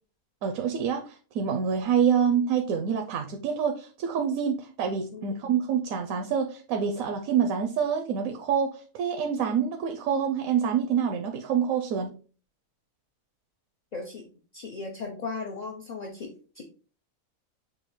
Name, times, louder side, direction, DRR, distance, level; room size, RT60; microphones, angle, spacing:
voice 1, 0.4-12.1, right 7 dB, 80° right, 4 dB, 1.0 m, -27 dB
voice 2, 5.1-5.5 13.9-14.2 14.5-16.6, left 4 dB, 50° left, 0 dB, 0.5 m, -37 dB
6.4 x 2.5 x 3.0 m, 0.38 s
omnidirectional pair, 1.4 m